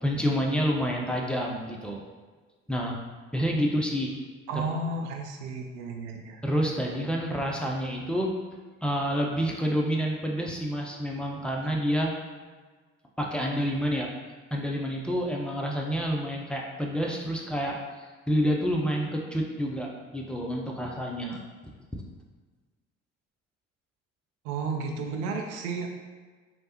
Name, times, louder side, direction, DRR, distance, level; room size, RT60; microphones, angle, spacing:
voice 1, 0.0-2.0 2.7-3.0 3.3-4.1 6.4-8.3 8.8-12.1 13.2-14.1 14.5-21.4 21.9-22.0, equal, 5° left, -1 dB, 0.4 m, -28 dB
voice 2, 4.5-6.4 24.4-25.9, right 3 dB, 75° right, 3 dB, 0.5 m, -32 dB
3.1 x 2.1 x 2.9 m, 1.4 s
hypercardioid pair, 55°, 36 cm